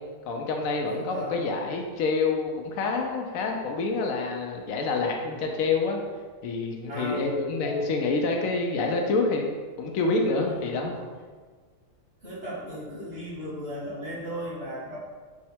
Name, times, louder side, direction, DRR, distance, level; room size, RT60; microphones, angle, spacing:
voice 1, 0.3-6.0 6.4-10.9, left 3 dB, 90° left, 2 dB, 1.0 m, -27 dB
voice 2, 0.8-1.4 5.3-5.6 6.9-7.8 10.4-10.8 12.2-15.0, equal, 55° right, -9 dB, 2.0 m, -36 dB
4.6 x 2.1 x 4.3 m, 1.5 s
omnidirectional pair, 1.4 m